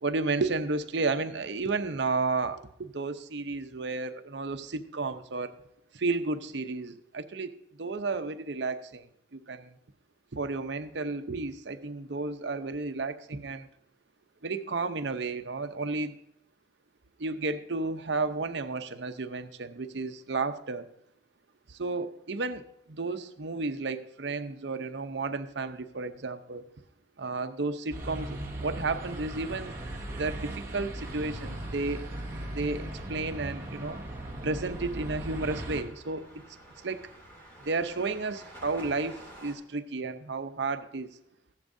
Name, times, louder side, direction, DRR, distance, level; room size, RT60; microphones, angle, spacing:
voice 1, 0.0-5.6 5.9-9.1 9.3-9.7 10.3-13.7 14.4-16.1 17.2-20.9 21.7-22.6 22.9-26.6 27.2-29.7 30.1-32.1 32.5-34.0 34.4-36.4 36.8-37.0 37.6-41.1, right 3 dB, 65° right, 9 dB, 0.7 m, -32 dB
sound 1, 27.9-35.8, right 1 dB, 15° right, 1.5 m, -38 dB
sound 2, 31.0-39.5, right 1 dB, 10° left, 2.6 m, -51 dB
14.5 x 10.5 x 2.7 m, 0.75 s
head